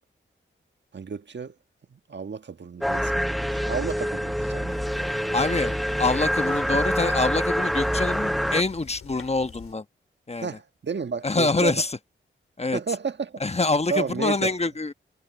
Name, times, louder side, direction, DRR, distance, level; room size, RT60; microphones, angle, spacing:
voice 1, 0.9-1.5 1.9-4.7 6.7-6.8 10.4-11.8 12.7-13.4 13.9-14.5, right 5 dB, 60° right, 1.5 m, -32 dB
sound 1, 2.8-8.6, equal, ahead, 0.5 m, -26 dB
sound 2, 4.7-9.7, left 7 dB, 85° left, 3.0 m, -47 dB
voice 2, 5.3-9.8 10.3-10.6 11.2-12.0 12.6-12.8 13.4-14.9, left 3 dB, 30° left, 1.1 m, -25 dB
cardioid pair, 50°, 21 cm